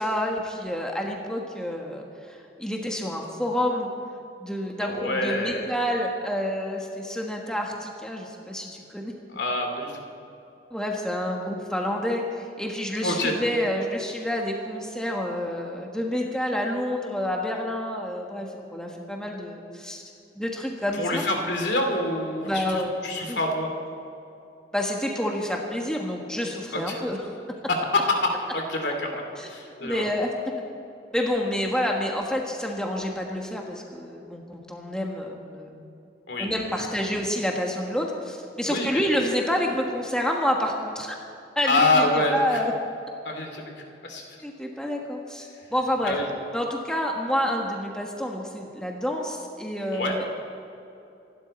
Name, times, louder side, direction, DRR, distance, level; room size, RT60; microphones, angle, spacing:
voice 1, 0.0-3.9 4.4-9.1 10.7-20.0 20.3-21.2 22.4-22.9 23.2-23.4 24.7-27.3 29.4-29.5 29.8-30.3 31.1-35.8 36.4-41.1 41.5-42.0 42.3-42.7 44.4-46.1 46.5-50.3, equal, 5° left, 0 dB, 1.3 m, -28 dB
voice 2, 4.8-5.7 9.3-10.0 13.0-13.3 21.0-23.7 26.7-27.0 27.7-29.2 29.5-30.0 36.3-36.5 38.7-39.0 41.7-42.6 43.2-43.6 44.0-44.2 46.0-46.3 49.9-50.3, left 2 dB, 70° left, 3 dB, 2.8 m, -26 dB
26.0 x 12.0 x 4.3 m, 2.7 s
head